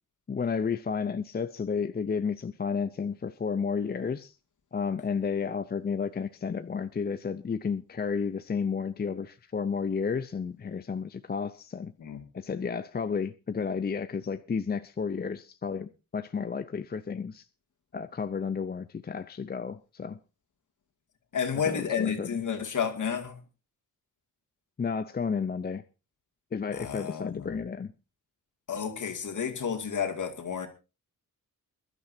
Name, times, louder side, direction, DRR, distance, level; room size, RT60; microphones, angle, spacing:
voice 1, 0.3-4.3 4.7-11.9 12.3-17.4 17.9-20.2 21.7-22.3 24.8-25.8 26.5-27.9, left 5 dB, 25° left, 0.6 m, -32 dB
voice 2, 21.3-23.4 26.7-27.6 28.7-30.7, left 7 dB, 55° left, 2.4 m, -31 dB
22.5 x 12.0 x 2.7 m
cardioid pair, 100°, 35 cm